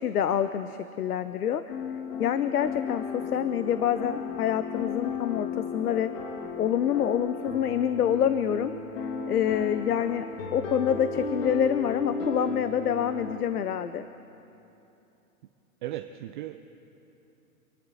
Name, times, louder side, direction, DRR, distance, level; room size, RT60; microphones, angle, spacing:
voice 1, 0.0-1.6 2.2-6.1 6.6-8.7 9.3-10.3 10.5-14.1, left 9 dB, 85° left, 12 dB, 0.8 m, -27 dB
sound 1, 1.7-13.4, left 5 dB, 55° left, 2.1 m, -34 dB
voice 2, 15.8-16.6, right 13 dB, 35° right, 7 dB, 0.6 m, -36 dB
27.0 x 10.5 x 4.1 m, 2.9 s
hypercardioid pair, 140°, 44 cm